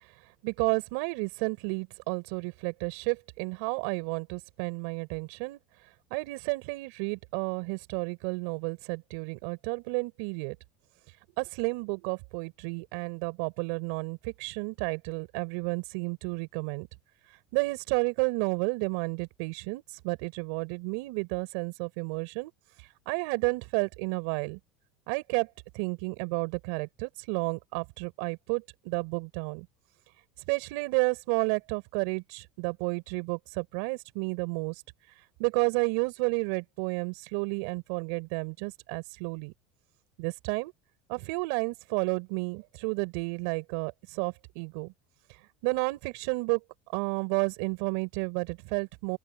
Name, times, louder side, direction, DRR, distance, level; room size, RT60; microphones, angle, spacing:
voice 1, 0.4-5.6 6.1-10.6 11.4-16.9 17.5-22.5 23.1-24.6 25.1-25.5 25.8-29.7 30.5-34.7 35.4-39.5 40.2-40.7 41.1-44.9 45.6-46.6 46.9-49.2, right 30 dB, 65° right, 5.3 m, -31 dB
open air
cardioid pair, 160°, 0 cm